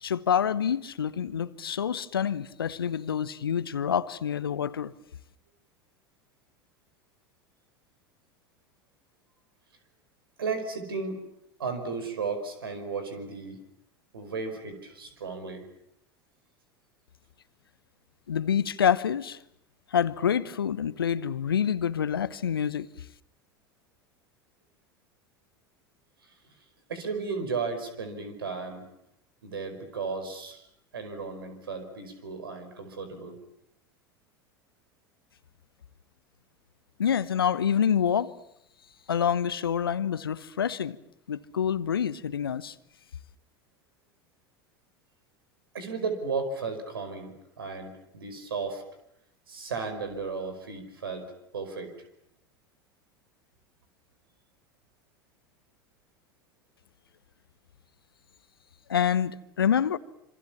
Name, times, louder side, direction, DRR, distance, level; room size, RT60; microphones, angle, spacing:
voice 1, 0.0-4.9 18.3-19.4 19.9-22.9 37.0-38.3 39.1-41.0 41.3-42.7 58.9-60.0, left 8 dB, 80° left, 1.0 m, -27 dB
voice 2, 10.4-11.2 11.6-13.6 14.1-15.6 26.9-28.8 29.4-30.7 30.9-33.4 45.7-48.8 49.5-51.3 51.5-51.9, right 4 dB, 75° right, 5.0 m, -34 dB
27.0 x 25.5 x 7.3 m
figure-of-eight pair, 80°, 12 cm